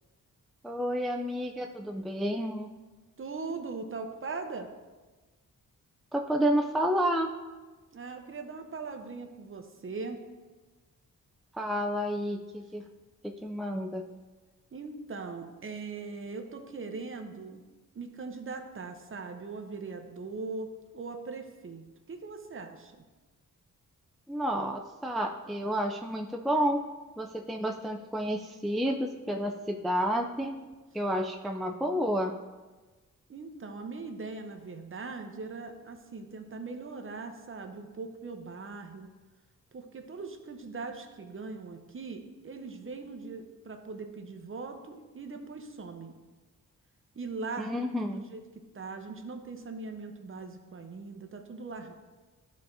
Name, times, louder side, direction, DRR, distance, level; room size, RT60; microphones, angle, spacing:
voice 1, 0.6-2.7 6.1-7.3 11.5-12.8 13.2-14.1 24.3-26.8 27.2-32.3 47.6-48.2, equal, ahead, 3 dB, 0.4 m, -30 dB
voice 2, 3.2-4.7 7.9-10.2 14.7-17.6 17.9-23.0 33.3-39.1 39.7-46.2 47.1-48.4 48.7-51.9, right 4 dB, 40° right, 5 dB, 0.8 m, -40 dB
12.0 x 4.2 x 2.7 m, 1.3 s
cardioid pair, 85°, 33 cm